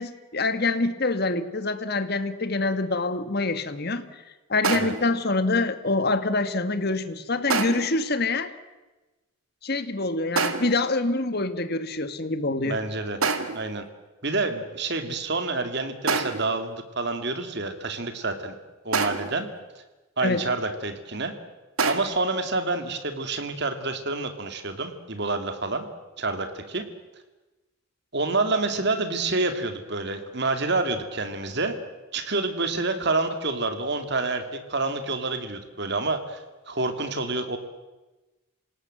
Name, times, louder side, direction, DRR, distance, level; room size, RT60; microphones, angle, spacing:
voice 1, 0.0-4.1 4.5-8.5 9.6-12.8 20.2-20.4, left 3 dB, 50° left, 11 dB, 1.5 m, -25 dB
sound 1, 4.6-5.2 7.5-8.0 10.4-10.9 13.2-13.7 16.1-16.6 18.9-19.4 21.8-22.0, right 4 dB, 85° right, 2.0 m, -26 dB
voice 2, 12.6-13.2 13.5-13.8 14.2-18.6 18.8-19.5 20.2-21.3 21.9-25.9 26.2-26.9 28.1-31.8 32.1-34.4 34.7-37.6, right 3 dB, 50° right, 8 dB, 2.4 m, -28 dB
27.5 x 18.5 x 7.7 m, 1.1 s
head